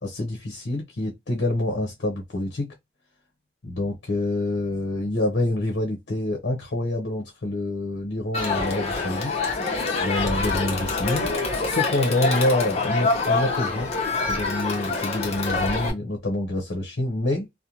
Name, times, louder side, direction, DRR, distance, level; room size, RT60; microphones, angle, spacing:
voice 1, 0.0-2.7 3.6-9.4 10.0-11.3 11.6-13.9 14.2-17.5, left 1 dB, 70° left, 0.7 m, -27 dB
Crowd, 8.3-15.9, left 3 dB, 35° left, 0.8 m, -26 dB
2.5 x 2.1 x 2.9 m
head